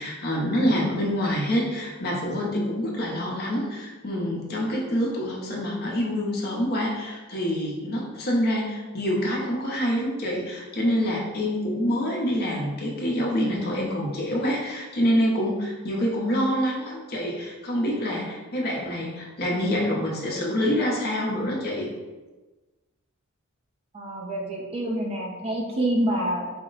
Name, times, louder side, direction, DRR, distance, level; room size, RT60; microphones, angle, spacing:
voice 1, 0.0-21.9, equal, 50° left, -2 dB, 0.8 m, -26 dB
voice 2, 23.9-26.5, right 1 dB, 30° right, 0 dB, 0.5 m, -27 dB
4.2 x 2.1 x 3.9 m, 1.2 s
head